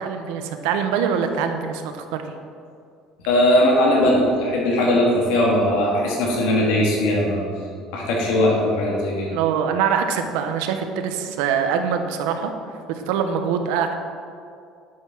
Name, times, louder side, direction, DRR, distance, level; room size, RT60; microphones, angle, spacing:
voice 1, 0.0-2.0 8.9-12.5 12.9-13.9, right 7 dB, 90° right, 6 dB, 1.0 m, -24 dB
voice 2, 3.3-7.4 7.9-9.3, left 1 dB, 85° left, -3 dB, 2.6 m, -19 dB
10.5 x 6.8 x 6.1 m, 2.3 s
cardioid pair, 160°, 0 cm